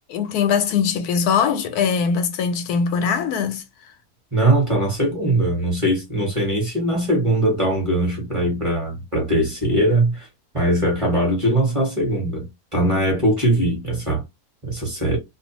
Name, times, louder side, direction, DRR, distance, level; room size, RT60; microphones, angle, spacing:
voice 1, 0.1-3.6, left 6 dB, 90° left, 1.1 m, -21 dB
voice 2, 4.3-10.3 10.5-12.5 12.7-14.2 14.6-15.2, right 1 dB, 25° right, 1.1 m, -20 dB
2.6 x 2.1 x 2.9 m
omnidirectional pair, 1.6 m